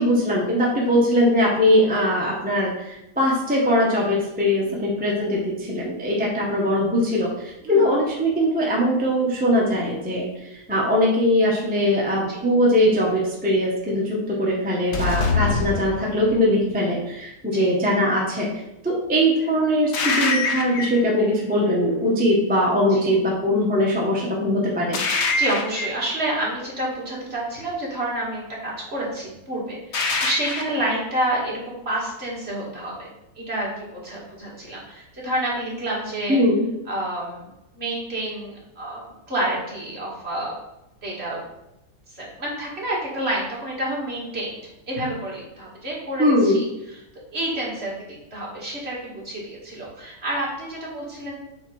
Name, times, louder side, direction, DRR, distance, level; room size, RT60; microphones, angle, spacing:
voice 1, 0.0-7.3 7.7-18.5 18.8-25.0 36.3-36.6 46.2-46.6, equal, 5° right, -4 dB, 1.1 m, -21 dB
sound 1, 14.9-16.5 19.9-21.1 24.9-26.1 29.9-30.9, left 3 dB, 50° left, 0.9 m, -24 dB
voice 2, 25.3-36.4 36.9-37.5 37.7-40.5 41.0-41.4 42.1-44.6 44.9-47.0 47.3-51.4, right 1 dB, 35° right, -5 dB, 2.3 m, -29 dB
7.8 x 4.3 x 4.9 m, 0.88 s
omnidirectional pair, 1.9 m